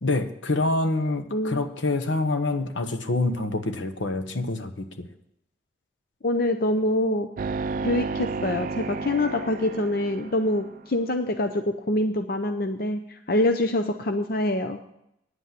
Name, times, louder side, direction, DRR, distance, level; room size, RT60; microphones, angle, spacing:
voice 1, 0.0-5.1, left 2 dB, 75° left, 8 dB, 1.1 m, -26 dB
voice 2, 1.3-1.7 6.2-7.3 7.8-14.8, left 1 dB, 50° left, 7 dB, 0.6 m, -25 dB
sound 1, 7.4-10.8, right 4 dB, 45° right, 0.4 m, -32 dB
9.7 x 8.3 x 7.6 m, 0.78 s
head